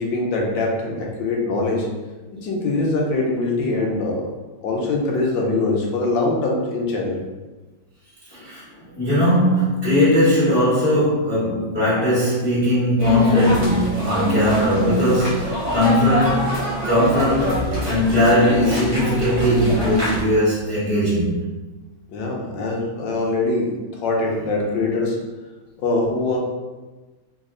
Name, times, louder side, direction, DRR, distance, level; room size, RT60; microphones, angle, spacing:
voice 1, 0.0-1.9 2.3-4.3 4.6-7.2 22.1-25.2 25.8-26.4, left 2 dB, 80° left, -1 dB, 1.4 m, -23 dB
voice 2, 8.3-8.6 9.0-16.6 16.8-21.4, left 1 dB, 20° left, -11 dB, 0.8 m, -19 dB
sound 1, 13.0-20.2, right 1 dB, 65° right, 1.3 m, -25 dB
3.5 x 2.1 x 3.6 m, 1.2 s
omnidirectional pair, 2.1 m